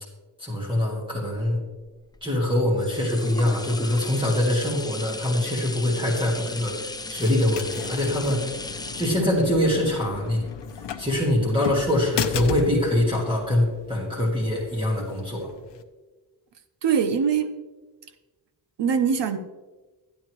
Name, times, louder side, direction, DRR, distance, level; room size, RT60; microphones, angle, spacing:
voice 1, 0.4-1.6 2.2-8.5 9.0-10.4 11.0-15.5, left 1 dB, 10° right, -4 dB, 1.8 m, -24 dB
sound 1, 1.8-11.5 12.0-12.1, left 2 dB, 10° left, 0.3 m, -37 dB
sound 2, 6.2-15.8, left 7 dB, 75° left, 0.7 m, -36 dB
voice 2, 16.8-17.5 18.8-19.4, right 7 dB, 80° right, 9 dB, 0.8 m, -22 dB
12.5 x 9.5 x 3.0 m, 1.2 s
wide cardioid pair, 165°, 42 cm